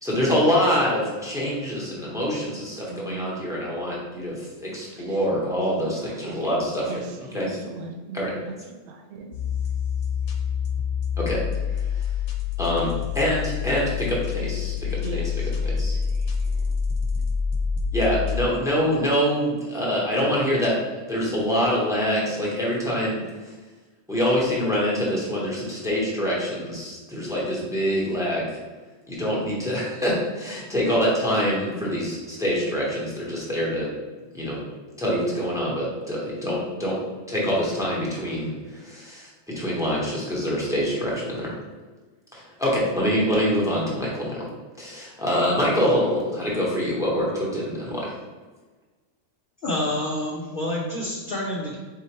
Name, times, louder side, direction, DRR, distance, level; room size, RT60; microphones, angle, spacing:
voice 1, 0.0-7.0 7.3-7.8 8.1-8.4 11.2-11.4 12.0-12.1 12.6-15.3 15.8-16.0 17.9-20.8 21.1-23.2 24.1-28.6 29.1-33.9 34.3-34.6 35.0-37.0 37.3-41.5 42.3-44.5 44.8-48.1, equal, 5° right, -5 dB, 0.9 m, -25 dB
voice 2, 2.9-3.3 4.9-5.3 5.8-6.5 6.8-8.3 8.7-9.3 14.4-14.5 15.0-16.8, right 3 dB, 60° right, 2 dB, 0.8 m, -40 dB
sound 1, 9.3-18.5, left 6 dB, 75° left, 0.9 m, -27 dB
voice 3, 49.6-51.8, left 1 dB, 55° left, -2 dB, 0.6 m, -28 dB
4.3 x 3.7 x 3.0 m, 1.3 s
omnidirectional pair, 1.3 m